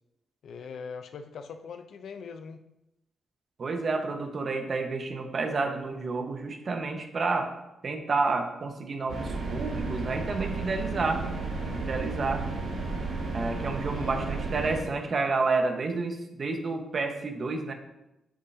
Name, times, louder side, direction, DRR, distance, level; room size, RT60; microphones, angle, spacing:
voice 1, 0.4-2.6 13.9-14.3, left 5 dB, 75° left, 8 dB, 0.7 m, -41 dB
voice 2, 3.6-7.5 7.8-11.2 11.7-12.4 13.3-17.7, right 3 dB, 50° right, 4 dB, 1.4 m, -30 dB
sound 1, 9.1-14.8, right 3 dB, 85° right, 2.9 m, -33 dB
9.4 x 8.5 x 2.9 m, 0.89 s
cardioid pair, 70°, 0 cm